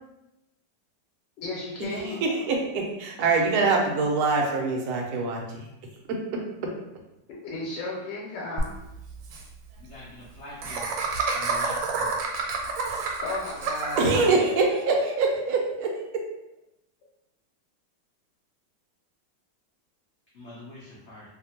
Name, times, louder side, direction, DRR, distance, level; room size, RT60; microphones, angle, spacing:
voice 1, 1.4-2.2 7.4-8.7 13.2-14.1, left 2 dB, 90° left, -5 dB, 1.4 m, -34 dB
voice 2, 2.0-5.6 6.1-6.4 14.0-16.2, right 3 dB, 70° right, 1 dB, 1.0 m, -24 dB
Laughter, 8.6-8.7 8.9-9.0 9.2-9.4 10.6-14.3, right 4 dB, 85° right, 1.3 m, -29 dB
voice 3, 9.9-10.8 11.3-11.9 20.4-21.2, left 1 dB, 65° left, -7 dB, 0.7 m, -43 dB
2.8 x 2.5 x 2.7 m, 0.89 s
omnidirectional pair, 1.9 m